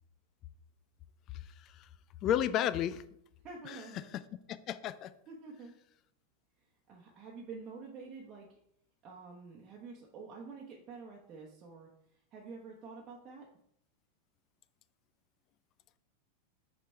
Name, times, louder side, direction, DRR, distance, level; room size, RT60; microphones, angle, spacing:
voice 1, 1.4-1.9 2.2-3.0 3.7-3.8 4.7-5.1, left 10 dB, 35° left, 14 dB, 0.3 m, -32 dB
voice 2, 3.4-4.1 5.3-5.8 6.6-8.5 9.0-13.5, right 4 dB, 30° right, -2 dB, 1.0 m, -48 dB
6.0 x 4.2 x 4.6 m, 0.74 s
figure-of-eight pair, 90°, 0 cm